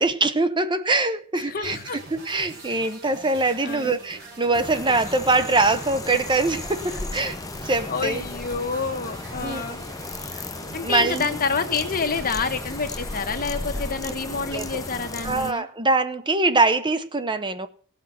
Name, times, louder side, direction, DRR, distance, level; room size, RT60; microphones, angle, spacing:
voice 1, 0.0-8.2 9.4-9.6 10.8-11.3 14.5-14.8 15.2-17.7, right 3 dB, 20° right, 11 dB, 0.8 m, -23 dB
voice 2, 1.4-2.0 3.6-4.0 7.9-9.8 10.7-15.7, left 5 dB, 40° left, 7 dB, 1.4 m, -28 dB
sound 1, 1.6-15.3, right 3 dB, 50° right, 6.3 m, -43 dB
sound 2, 4.5-15.5, left 2 dB, 15° left, 0.7 m, -35 dB
17.5 x 6.3 x 5.8 m, 0.43 s
head